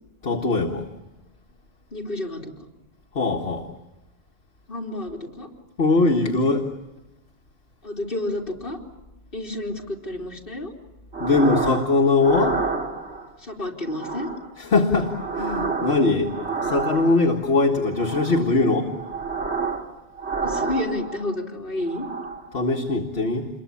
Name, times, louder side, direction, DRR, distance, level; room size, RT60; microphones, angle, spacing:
voice 1, 0.2-0.9 3.1-3.7 5.8-6.7 11.2-12.6 14.6-16.3 16.6-18.9 22.5-23.5, left 3 dB, 70° left, 0 dB, 1.9 m, -21 dB
voice 2, 1.9-2.5 4.7-5.5 7.8-8.8 9.3-10.7 13.4-14.3 20.4-22.1, left 1 dB, 55° left, -1 dB, 3.6 m, -30 dB
sound 1, 11.1-11.9 12.2-13.3 13.9-14.5 14.9-17.4 17.9-18.5 18.9-19.9 20.2-21.3 21.8-22.5, right 4 dB, 90° right, 2.6 m, -29 dB
28.0 x 22.5 x 8.5 m, 1.0 s
omnidirectional pair, 1.1 m